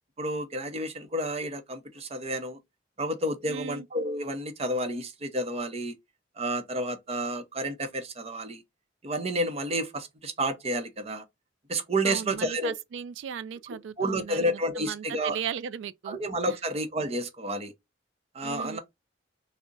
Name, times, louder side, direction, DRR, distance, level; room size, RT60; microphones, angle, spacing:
voice 1, 0.2-2.6 3.0-5.9 6.4-8.6 9.0-11.2 11.7-12.7 14.0-15.4 16.0-17.7 18.3-18.8, right 1 dB, 35° right, 0.6 m, -30 dB
voice 2, 3.5-3.9 12.0-16.2 16.5-16.6 18.4-18.8, right 7 dB, 75° right, 0.3 m, -37 dB
3.6 x 2.0 x 3.8 m
head